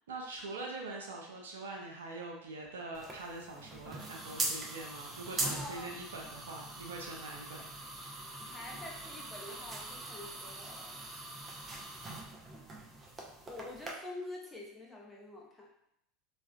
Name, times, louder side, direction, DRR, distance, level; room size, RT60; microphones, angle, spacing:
voice 1, 0.1-7.6, right 2 dB, 85° right, 0 dB, 0.5 m, -43 dB
sound 1, 2.9-13.9, right 2 dB, 30° right, 0.5 m, -42 dB
voice 2, 5.4-5.9 8.5-11.0 13.4-15.7, left 2 dB, 10° left, -3 dB, 0.7 m, -46 dB
2.4 x 2.2 x 2.2 m, 0.73 s
hypercardioid pair, 85°, 0 cm